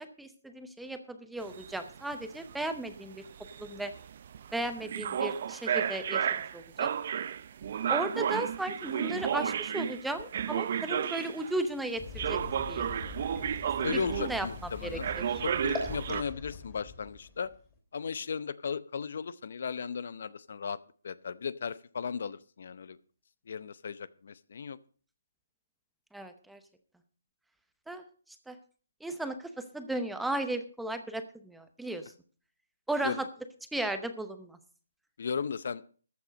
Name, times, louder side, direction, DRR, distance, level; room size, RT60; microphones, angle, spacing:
voice 1, 0.0-3.2 3.6-3.9 4.5-6.3 6.5-6.9 7.9-12.4 12.7-12.8 14.2-14.5 14.8-15.2 26.1-26.6 27.9-28.0 28.5-28.6 29.0-32.1 32.9-33.3 33.7-34.6, right 1 dB, ahead, 8 dB, 0.8 m, -35 dB
sound 1, 1.4-11.6 12.2-14.6 15.0-16.2, right 8 dB, 40° right, 0.6 m, -33 dB
Bolotas na Água Parque da Cidade, 12.0-17.8, left 4 dB, 15° left, 3.2 m, -42 dB
voice 2, 13.8-15.1 15.4-17.5 17.9-20.8 21.0-23.0 23.5-24.8 33.0-33.3 35.2-35.8, left 6 dB, 55° left, 18 dB, 0.7 m, -36 dB
14.0 x 8.8 x 5.2 m, 0.41 s
hypercardioid pair, 165°, 0 cm